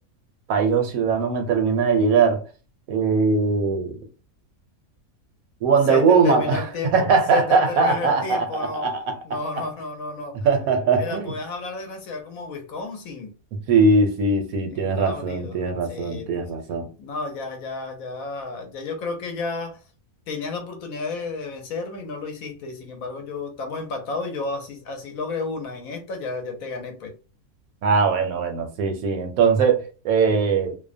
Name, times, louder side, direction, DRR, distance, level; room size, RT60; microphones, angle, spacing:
voice 1, 0.5-2.4 2.9-4.0 5.6-6.6 6.9-9.2 10.4-11.3 13.7-16.9 27.8-30.8, right 4 dB, 75° right, 1.0 m, -20 dB
voice 2, 5.9-6.9 7.3-8.9 9.2-10.4 11.0-13.3 14.7-16.5 17.0-19.8 20.3-27.1, left 3 dB, 70° left, 1.1 m, -32 dB
2.7 x 2.1 x 2.5 m
omnidirectional pair, 1.5 m